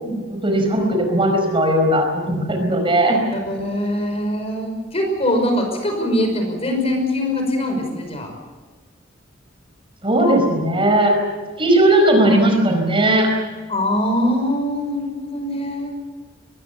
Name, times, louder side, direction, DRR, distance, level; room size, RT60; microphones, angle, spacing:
voice 1, 0.3-3.2 10.0-11.1 11.6-13.3, right 1 dB, 25° right, 4 dB, 4.8 m, -17 dB
voice 2, 3.3-8.3 13.7-15.9, left 1 dB, 30° left, 4 dB, 5.6 m, -22 dB
22.5 x 20.5 x 7.0 m, 1.4 s
head